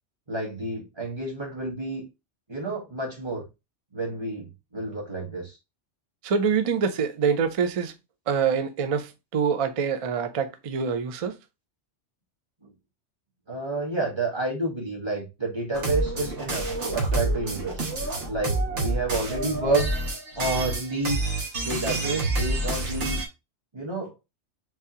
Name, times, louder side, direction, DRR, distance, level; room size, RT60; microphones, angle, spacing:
voice 1, 0.3-2.0 2.5-3.4 3.9-5.6 12.6-12.7 13.5-17.8 18.3-19.9 20.4-23.2 23.7-24.1, right 2 dB, 25° right, 1.3 m, -30 dB
voice 2, 6.2-7.9 8.3-11.4, right 6 dB, 65° right, 0.3 m, -25 dB
sound 1, 15.7-23.3, right 2 dB, 80° right, 1.3 m, -28 dB
3.4 x 3.3 x 2.7 m
omnidirectional pair, 1.2 m